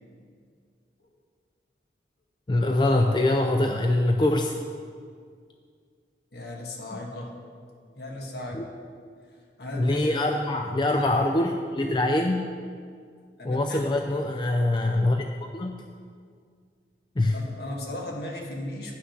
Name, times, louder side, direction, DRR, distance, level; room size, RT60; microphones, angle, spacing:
voice 1, 2.5-4.5 6.9-7.0 8.5-8.6 9.8-12.5 13.4-15.8 17.2-17.4, left 1 dB, 25° left, 4 dB, 0.4 m, -24 dB
voice 2, 6.3-7.5 7.9-8.7 9.6-10.2 10.8-11.1 13.4-13.9 16.2-16.3 17.3-19.0, left 1 dB, 65° left, 0 dB, 1.4 m, -36 dB
9.8 x 5.9 x 5.7 m, 2.1 s
head